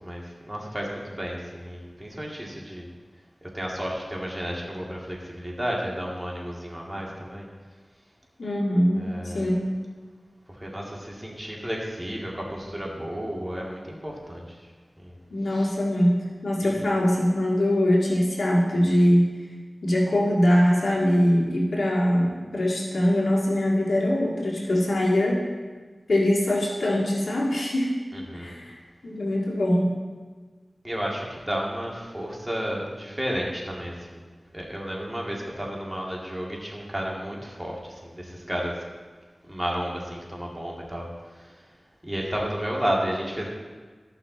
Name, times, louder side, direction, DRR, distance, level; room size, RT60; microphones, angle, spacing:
voice 1, 0.0-2.9 3.5-7.5 9.0-9.5 10.5-14.6 15.0-15.2 15.5-15.7 16.6-16.7 28.1-28.5 30.8-34.2 34.5-38.8 39.4-41.6 42.0-43.5, equal, 15° right, -3 dB, 2.3 m, -32 dB
voice 2, 8.4-9.7 15.3-19.3 19.8-25.5 26.1-27.9 28.3-28.8 29.0-29.9, left 1 dB, 90° left, -4 dB, 1.9 m, -22 dB
14.0 x 5.8 x 4.0 m, 1.4 s
cardioid pair, 45°, 0 cm